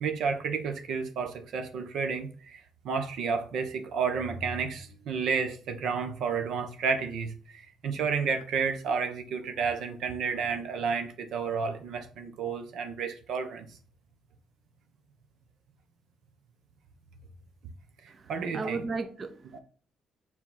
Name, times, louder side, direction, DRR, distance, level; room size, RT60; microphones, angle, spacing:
voice 1, 0.0-13.7 18.0-18.8, right 5 dB, 75° right, 7 dB, 1.1 m, -31 dB
voice 2, 18.1-19.6, right 4 dB, 40° right, 8 dB, 0.8 m, -36 dB
4.8 x 4.2 x 5.8 m, 0.42 s
cardioid pair, 90°, 0 cm